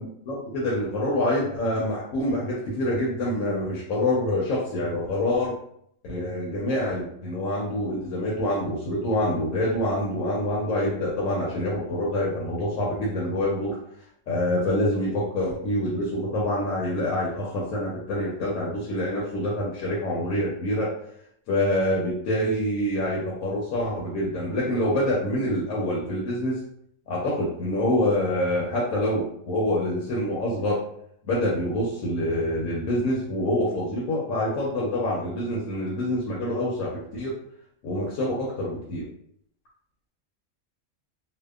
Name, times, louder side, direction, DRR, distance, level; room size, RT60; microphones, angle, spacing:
voice 1, 0.0-5.5 6.0-13.8 14.3-20.9 21.5-26.6 27.1-30.8 31.2-37.3 37.8-39.1, left 1 dB, 85° left, -5 dB, 1.0 m, -26 dB
2.7 x 2.1 x 2.3 m, 0.69 s
omnidirectional pair, 1.3 m